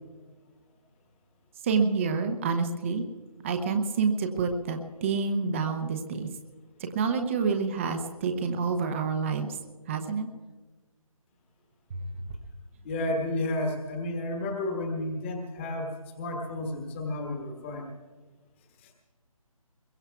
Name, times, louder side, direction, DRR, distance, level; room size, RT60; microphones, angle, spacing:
voice 1, 1.6-3.0 3.4-6.3 6.9-9.5 9.9-10.3, right 5 dB, 20° right, 5 dB, 0.9 m, -28 dB
voice 2, 12.8-17.9, left 1 dB, 20° left, 2 dB, 1.4 m, -31 dB
23.0 x 22.5 x 2.4 m, 1.3 s
figure-of-eight pair, 150°, 18 cm